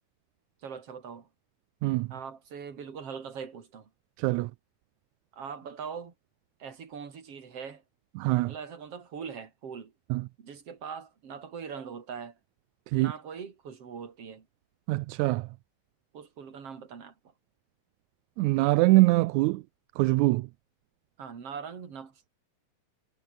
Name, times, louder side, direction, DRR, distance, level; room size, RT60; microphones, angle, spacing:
voice 1, 0.6-1.3 2.1-3.9 5.3-6.1 6.6-7.8 8.5-9.9 10.4-12.4 12.9-14.5 16.1-17.1 21.2-22.1, right 6 dB, 50° right, 3.7 m, -41 dB
voice 2, 1.8-2.1 4.2-4.5 8.2-8.5 10.1-10.3 12.9-13.1 14.9-15.5 18.4-19.6 20.0-20.5, right 21 dB, 80° right, 1.9 m, -24 dB
omnidirectional pair, 3.4 m